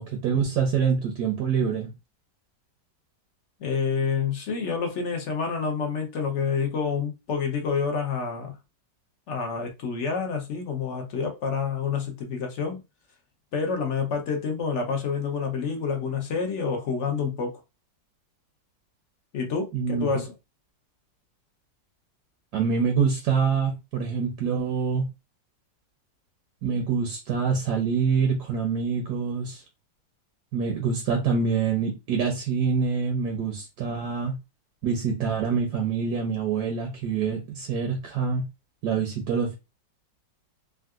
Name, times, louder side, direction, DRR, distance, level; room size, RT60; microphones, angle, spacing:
voice 1, 0.0-1.9 19.7-20.1 22.5-25.0 26.6-29.6 30.5-34.3 34.8-38.4 38.8-39.5, right 6 dB, 70° right, 1.1 m, -25 dB
voice 2, 3.6-8.6 9.3-12.8 13.5-17.6 19.3-20.3, left 5 dB, 65° left, 0.7 m, -28 dB
3.6 x 2.3 x 2.3 m
omnidirectional pair, 2.0 m